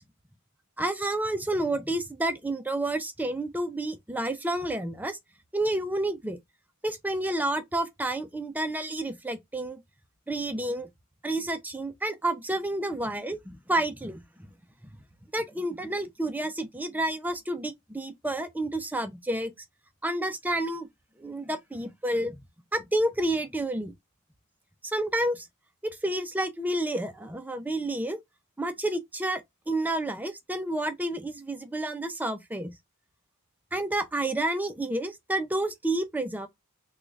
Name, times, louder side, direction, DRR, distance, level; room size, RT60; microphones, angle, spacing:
voice 1, 0.8-5.2 5.5-6.4 6.8-9.8 10.3-10.9 11.2-14.2 14.8-15.0 15.3-19.5 20.0-20.9 21.2-22.4 22.7-23.9 24.8-25.5 25.8-28.2 28.6-32.7 33.7-36.5, right 1 dB, 10° right, 0.5 m, -30 dB
3.7 x 2.3 x 3.1 m
head